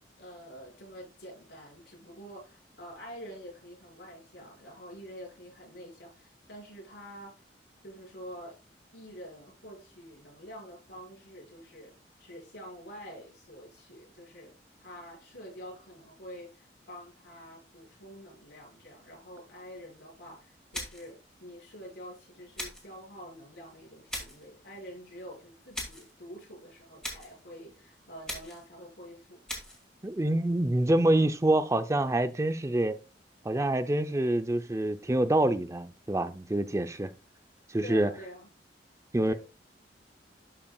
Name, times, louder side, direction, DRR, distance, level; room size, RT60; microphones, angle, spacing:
voice 1, 0.2-7.4 7.8-8.5 8.9-14.5 14.8-29.4 37.8-38.5 39.3-39.4, equal, 90° left, 4.8 m, -47 dB
sound 1, 20.7-21.2 22.6-22.9 24.1-24.5 25.7-26.1 27.0-27.4 28.3-28.7 29.5-29.8, equal, 5° left, 2.3 m, -39 dB
voice 2, 30.0-33.0 33.4-37.1 37.7-38.1 39.1-39.3, right 1 dB, 15° right, 0.5 m, -26 dB
11.5 x 5.8 x 2.3 m
head